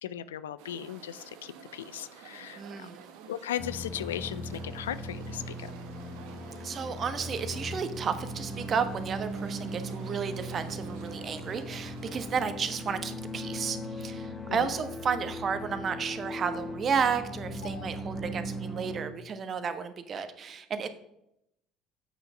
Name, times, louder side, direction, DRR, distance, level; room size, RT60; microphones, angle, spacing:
voice 1, 0.0-2.9 3.3-5.7 14.5-14.7 17.6-17.9, left 11 dB, 80° left, 16 dB, 0.4 m, -37 dB
sound 1, 0.6-12.4, right 7 dB, 65° right, 1.1 m, -50 dB
voice 2, 2.5-3.0 6.6-20.9, right 6 dB, 40° right, 10 dB, 1.1 m, -32 dB
sound 2, 3.6-19.1, equal, 20° left, 1.3 m, -39 dB
8.1 x 6.2 x 6.2 m, 0.80 s
hypercardioid pair, 60°, 0 cm